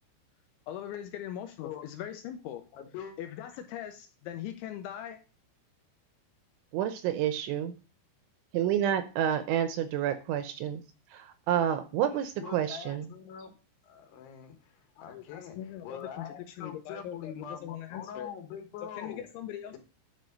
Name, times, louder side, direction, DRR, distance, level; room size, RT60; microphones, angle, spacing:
voice 1, 0.7-2.6 3.2-5.2 15.0-18.3 18.8-19.8, left 10 dB, 85° left, 7 dB, 2.8 m, -41 dB
voice 2, 2.7-3.2 12.1-13.5 13.8-19.2 19.7-19.8, left 8 dB, 65° left, 5 dB, 3.1 m, -44 dB
voice 3, 6.7-7.7 8.5-10.8 11.1-13.1, right 10 dB, 80° right, 9 dB, 2.8 m, -29 dB
10.5 x 5.3 x 5.3 m, 0.33 s
omnidirectional pair, 6.0 m